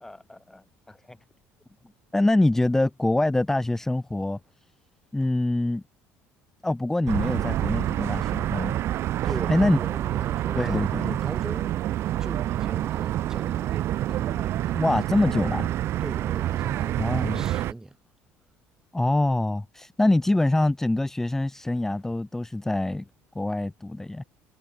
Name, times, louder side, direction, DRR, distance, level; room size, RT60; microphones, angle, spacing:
voice 1, 0.0-1.2 2.1-4.4 5.1-5.8 6.6-8.8 9.2-9.8 10.6-11.2 14.7-15.7 17.0-17.4 18.9-23.0 23.4-24.2, left 2 dB, 10° left, 2.0 m, -25 dB
sound 1, 7.1-17.7, right 13 dB, 55° right, 1.3 m, -27 dB
voice 2, 9.2-15.3 16.0-18.0, right 2 dB, 10° right, 3.4 m, -40 dB
cardioid pair, 120°, 5 cm